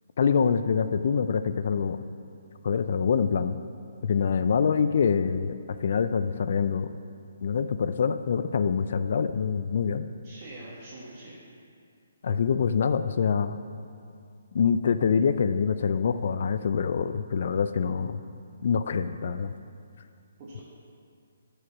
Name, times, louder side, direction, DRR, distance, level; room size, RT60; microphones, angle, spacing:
voice 1, 0.2-2.0 2.6-3.6 4.0-5.5 5.8-6.9 7.4-10.1 12.2-13.6 14.5-18.2 18.6-19.5, left 6 dB, 55° left, 11 dB, 0.3 m, -25 dB
voice 2, 10.2-11.4 20.4-20.6, right 2 dB, 35° right, -7 dB, 1.6 m, -44 dB
8.1 x 5.0 x 6.1 m, 2.3 s
figure-of-eight pair, 145°, 0 cm